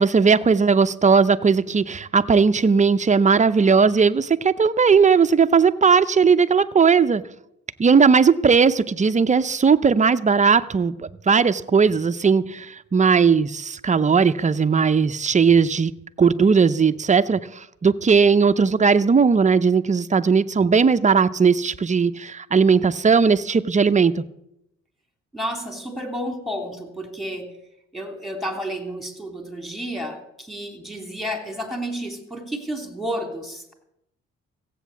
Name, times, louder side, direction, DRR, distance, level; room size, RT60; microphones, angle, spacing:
voice 1, 0.0-7.2 7.8-15.9 16.2-24.2, right 5 dB, 25° right, 0.6 m, -18 dB
voice 2, 25.3-27.5 27.9-33.7, equal, ahead, 3.1 m, -31 dB
15.5 x 8.4 x 7.1 m
cardioid pair, 90°, 30 cm